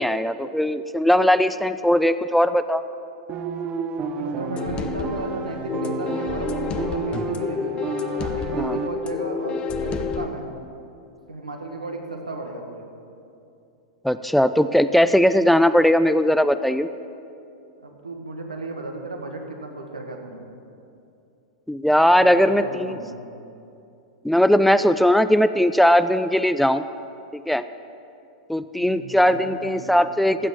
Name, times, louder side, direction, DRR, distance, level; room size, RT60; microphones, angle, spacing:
voice 1, 0.0-2.8 8.6-8.8 14.0-16.9 21.7-23.0 24.2-26.8 27.3-27.6 28.5-30.5, equal, ahead, 12 dB, 0.3 m, -19 dB
sound 1, 3.3-8.9, right 6 dB, 35° right, 0.8 m, -31 dB
voice 2, 4.1-7.7 8.2-10.5 11.3-12.9 17.8-20.5 22.2-23.2 28.8-29.9, right 2 dB, 90° right, 2 dB, 1.6 m, -34 dB
sound 2, 4.6-10.3, left 5 dB, 30° left, 0.7 m, -29 dB
15.0 x 6.2 x 7.4 m, 2.6 s
figure-of-eight pair, 100°, 4 cm